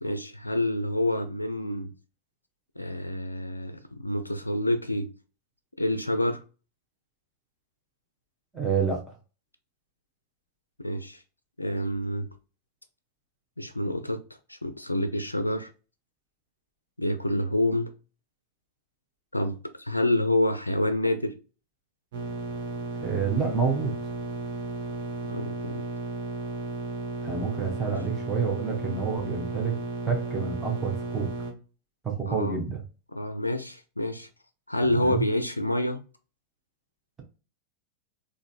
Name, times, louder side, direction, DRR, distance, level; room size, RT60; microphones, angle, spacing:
voice 1, 0.0-1.9 2.8-5.1 5.8-6.4 10.8-11.2 11.6-12.3 13.6-14.2 14.5-15.7 17.0-17.9 19.3-21.3 25.3-25.8 27.8-27.9 32.3-32.6 33.1-34.3 34.7-36.0, left 1 dB, 85° left, 0.3 m, -28 dB
voice 2, 8.5-9.0 23.0-24.0 27.2-29.8 30.1-31.3 32.0-32.8 35.0-35.3, right 5 dB, 15° right, 1.0 m, -28 dB
sound 1, 22.1-31.5, right 3 dB, 55° right, 1.0 m, -34 dB
3.8 x 2.5 x 2.4 m
figure-of-eight pair, 90°, 0 cm